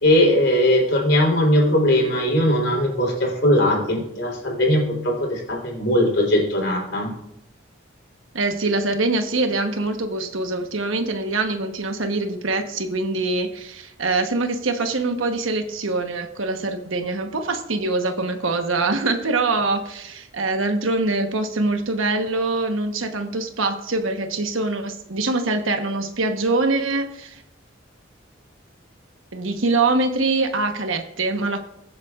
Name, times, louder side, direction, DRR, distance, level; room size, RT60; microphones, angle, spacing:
voice 1, 0.0-7.1, left 1 dB, 65° left, -1 dB, 3.7 m, -19 dB
voice 2, 8.3-27.4 29.3-31.6, right 3 dB, 80° right, 6 dB, 1.1 m, -24 dB
21.0 x 7.4 x 2.5 m, 0.84 s
head